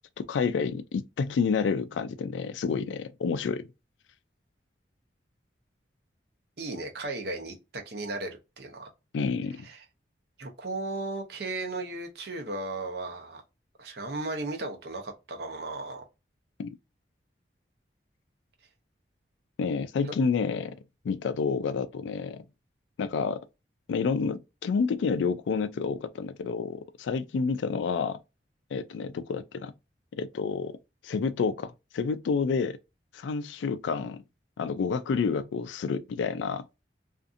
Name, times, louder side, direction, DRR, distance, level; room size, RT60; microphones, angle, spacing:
voice 1, 0.2-3.7 9.1-9.6 16.6-16.8 19.6-20.8 21.0-22.4 23.0-23.4 23.9-28.2 28.7-29.7 30.2-30.8 31.0-32.8 33.1-34.2 34.6-36.6, left 5 dB, 85° left, 0.3 m, -29 dB
voice 2, 6.6-8.9 9.6-9.8 10.4-13.4 13.8-16.1, right 2 dB, 60° right, 0.7 m, -35 dB
2.6 x 2.5 x 2.4 m
head